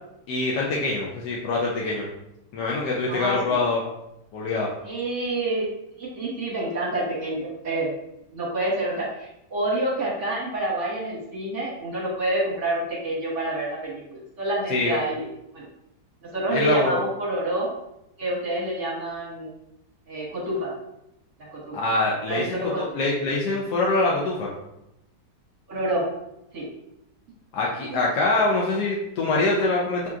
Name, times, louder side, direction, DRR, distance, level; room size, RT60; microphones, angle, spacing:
voice 1, 0.3-2.1 2.5-3.8 4.3-4.7 14.7-15.0 16.5-17.0 21.7-24.5 27.5-30.1, left 2 dB, 80° left, -3 dB, 1.2 m, -24 dB
voice 2, 3.1-3.6 4.8-7.9 8.3-15.3 15.5-15.6 16.2-17.7 18.2-19.5 20.1-20.7 21.5-21.8 22.3-22.9 25.7-26.1 26.5-26.7 27.9-28.0, right 1 dB, 50° right, -4 dB, 1.2 m, -28 dB
5.8 x 2.8 x 2.4 m, 0.85 s
omnidirectional pair, 1.8 m